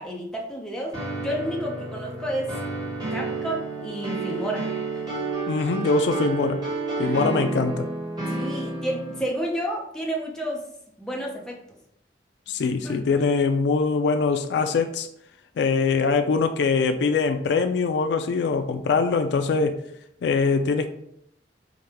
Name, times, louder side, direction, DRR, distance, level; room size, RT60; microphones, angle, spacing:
voice 1, 0.0-2.5 3.1-4.7 7.0-7.2 8.2-10.6 11.0-11.6 12.8-13.0, equal, 5° left, -2 dB, 0.7 m, -30 dB
sound 1, 0.9-9.2, right 3 dB, 25° right, 1.2 m, -30 dB
voice 2, 5.5-6.6 7.0-7.9 12.5-15.1 15.6-19.8 20.2-20.9, left 4 dB, 70° left, 7 dB, 0.3 m, -23 dB
5.0 x 2.2 x 2.9 m, 0.72 s
head